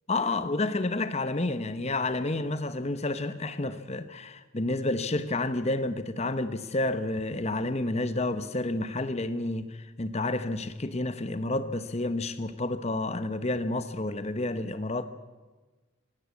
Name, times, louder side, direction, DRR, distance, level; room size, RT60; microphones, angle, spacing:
voice 1, 0.1-15.1, left 2 dB, 30° left, 0.9 m, -30 dB
22.0 x 17.0 x 8.4 m
head